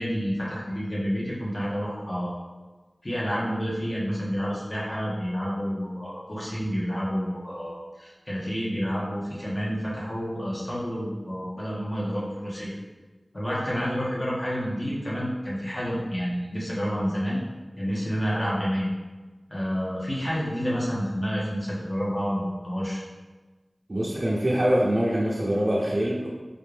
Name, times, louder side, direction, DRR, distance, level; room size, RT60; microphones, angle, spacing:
voice 1, 0.0-2.4 3.0-12.8 13.3-17.4 17.8-18.9 19.5-23.0, equal, 40° left, -7 dB, 1.4 m, -29 dB
voice 2, 23.9-26.3, equal, 50° right, -6 dB, 0.6 m, -24 dB
4.2 x 2.6 x 3.3 m, 1.3 s
wide cardioid pair, 40°, 0 cm